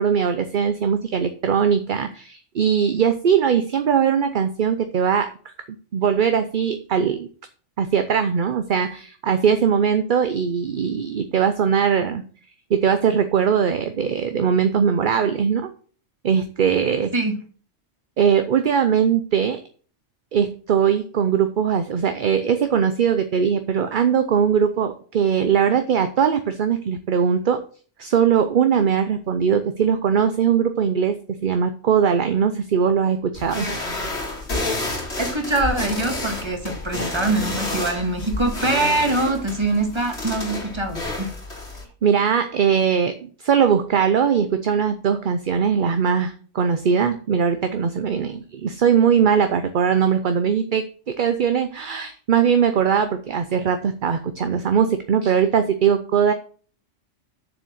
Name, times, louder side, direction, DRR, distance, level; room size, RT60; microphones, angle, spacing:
voice 1, 0.0-5.3 5.9-7.3 7.8-12.2 12.7-15.7 16.2-17.1 18.2-19.6 20.3-27.6 28.0-33.7 42.0-56.3, right 7 dB, 50° right, 9 dB, 0.8 m, -20 dB
sound 1, 33.3-41.8, left 2 dB, 60° left, 3.2 m, -30 dB
voice 2, 35.2-41.3, right 2 dB, 25° right, 4 dB, 1.9 m, -23 dB
7.6 x 6.7 x 6.4 m, 0.43 s
omnidirectional pair, 1.2 m